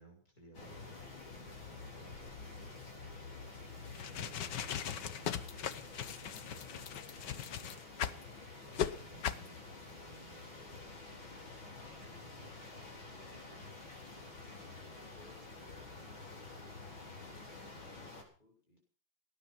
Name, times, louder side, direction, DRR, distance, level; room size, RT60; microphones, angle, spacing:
voice 1, 0.0-7.0 8.0-10.5 11.3-12.5, right 2 dB, 45° left, 1 dB, 7.4 m, -61 dB
sound 1, 0.5-18.2, left 3 dB, 80° left, 5.0 m, -49 dB
sound 2, 3.9-8.2 8.7-8.9 9.2-9.5, left 9 dB, 65° left, 1.5 m, -38 dB
voice 2, 13.1-14.0 14.3-18.8, left 2 dB, 25° left, -1 dB, 5.1 m, -63 dB
18.5 x 11.5 x 6.0 m, 0.43 s
omnidirectional pair, 2.1 m